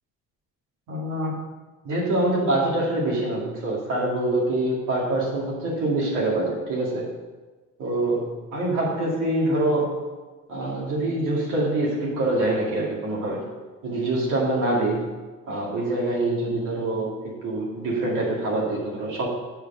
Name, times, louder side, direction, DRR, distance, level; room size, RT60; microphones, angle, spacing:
voice 1, 0.9-1.4 1.8-7.1 7.8-10.0 10.5-13.5 13.8-15.1 15.4-19.3, right 1 dB, 80° right, -5 dB, 2.2 m, -25 dB
6.9 x 6.4 x 5.6 m, 1.2 s
cardioid pair, 90°, 30 cm